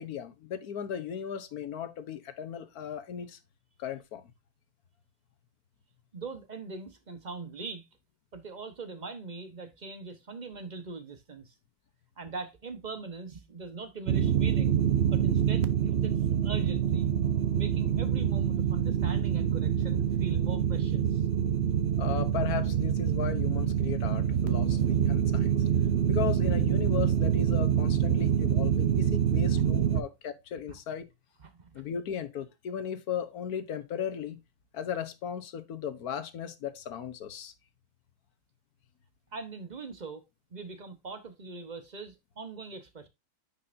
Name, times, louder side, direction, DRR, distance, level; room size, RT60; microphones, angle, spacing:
voice 1, 0.0-3.4 3.8-4.3 22.0-25.6 26.1-31.1 31.7-34.4 34.7-37.5, left 8 dB, 55° left, 1.2 m, -36 dB
voice 2, 6.1-7.9 8.3-11.5 12.2-14.8 15.1-16.2 16.4-17.1 17.5-21.2 29.9-30.0 30.7-30.8 31.4-31.9 39.3-43.1, right 4 dB, 30° right, 0.9 m, -42 dB
sound 1, 14.1-30.0, right 9 dB, 85° right, 0.5 m, -26 dB
9.5 x 5.6 x 2.6 m
omnidirectional pair, 2.1 m